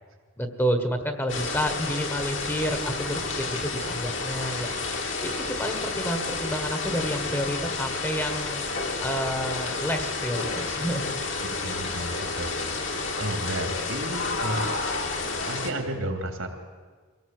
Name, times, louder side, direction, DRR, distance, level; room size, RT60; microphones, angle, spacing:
voice 1, 0.4-8.6 9.0-11.0, equal, 10° left, 6 dB, 1.5 m, -30 dB
sound 1, 1.3-15.7, left 3 dB, 60° left, 2.5 m, -30 dB
voice 2, 11.4-14.7 15.5-16.5, right 1 dB, 75° right, 4 dB, 3.2 m, -33 dB
24.5 x 17.5 x 7.9 m, 1.5 s
head